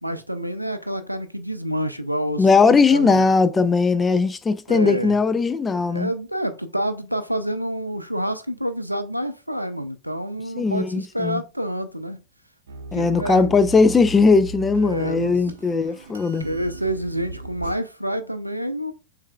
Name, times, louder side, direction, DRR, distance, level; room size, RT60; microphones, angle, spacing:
voice 1, 0.0-3.3 4.7-5.2 5.9-12.2 12.9-13.6 14.8-15.4 16.4-18.9, equal, 90° right, 0.3 m, -28 dB
voice 2, 2.4-6.1 10.6-11.4 12.9-16.5, left 4 dB, 15° left, 0.4 m, -19 dB
sound 1, 12.7-17.8, right 3 dB, 65° right, 0.8 m, -37 dB
6.4 x 3.3 x 2.2 m
figure-of-eight pair, 90°, 0 cm